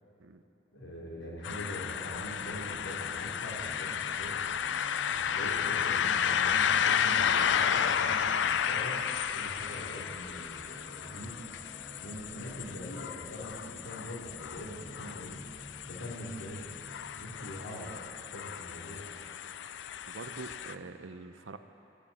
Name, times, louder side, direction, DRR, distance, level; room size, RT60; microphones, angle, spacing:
voice 1, 0.7-4.4 5.1-9.0 9.3-11.4 12.0-16.7 17.1-19.1, equal, 85° left, -4 dB, 3.2 m, -43 dB
sound 1, 1.4-20.7, left 8 dB, 65° left, 0.4 m, -32 dB
sound 2, 1.7-17.5, left 1 dB, 20° left, 1.6 m, -51 dB
voice 2, 20.1-21.6, right 3 dB, 85° right, 10 dB, 0.7 m, -44 dB
17.0 x 14.0 x 4.2 m, 2.8 s
head